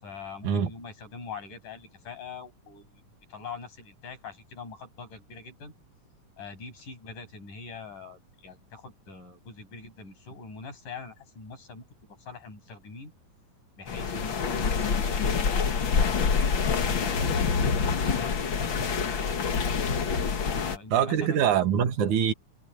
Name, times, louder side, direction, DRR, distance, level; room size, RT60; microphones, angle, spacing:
voice 1, 0.0-3.0 3.3-5.7 6.4-13.1 13.8-19.7 20.4-21.4, left 5 dB, 85° left, 9.0 m, -43 dB
sound 1, 13.9-20.8, left 5 dB, 45° left, 2.1 m, -26 dB
voice 2, 20.9-22.3, right 8 dB, 75° right, 3.0 m, -24 dB
omnidirectional pair, 3.6 m